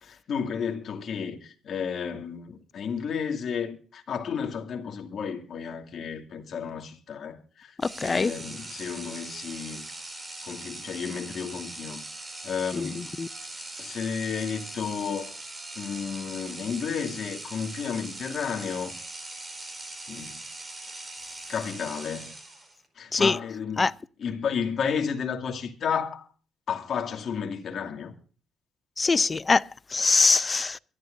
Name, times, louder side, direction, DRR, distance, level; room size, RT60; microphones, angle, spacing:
voice 1, 0.0-9.9 10.4-12.0 12.4-13.1 13.8-15.3 15.8-19.0 20.1-20.4 21.5-22.3 23.0-23.9 24.2-26.3 26.7-28.1, left 6 dB, 60° left, 2.6 m, -32 dB
voice 2, 7.8-8.3 12.7-13.3 23.1-23.4 23.8-23.9 29.0-30.8, left 4 dB, 30° left, 0.6 m, -23 dB
sound 1, 7.8-22.9, right 2 dB, 25° right, 4.2 m, -41 dB
24.0 x 12.5 x 2.7 m
cardioid pair, 90°, 0 cm